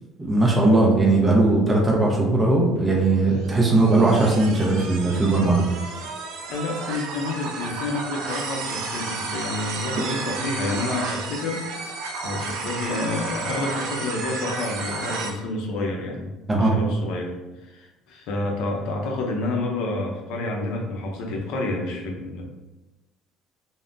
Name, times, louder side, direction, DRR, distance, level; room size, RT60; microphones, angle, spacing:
voice 1, 0.2-5.6 16.5-16.7, right 2 dB, 10° right, -2 dB, 0.5 m, -19 dB
sound 1, 2.7-15.3, right 3 dB, 75° right, 0.5 m, -32 dB
voice 2, 6.5-16.3 16.6-17.3 17.6-22.4, left 2 dB, 65° left, 1 dB, 0.6 m, -29 dB
3.5 x 2.0 x 2.5 m, 1.1 s
cardioid pair, 175°, 0 cm